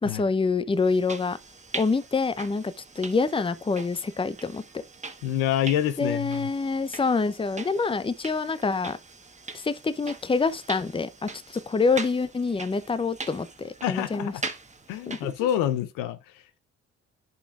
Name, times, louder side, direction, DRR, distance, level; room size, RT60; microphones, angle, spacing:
voice 1, 0.0-1.4 1.7-4.8 6.0-9.0 9.5-14.3 15.1-15.3, left 4 dB, 15° left, 0.7 m, -26 dB
sound 1, 0.8-15.7, right 3 dB, 20° right, 1.3 m, -41 dB
voice 2, 5.2-6.5 13.8-14.4 14.9-16.6, left 11 dB, 80° left, 0.7 m, -27 dB
11.0 x 5.2 x 2.4 m
hypercardioid pair, 45°, 32 cm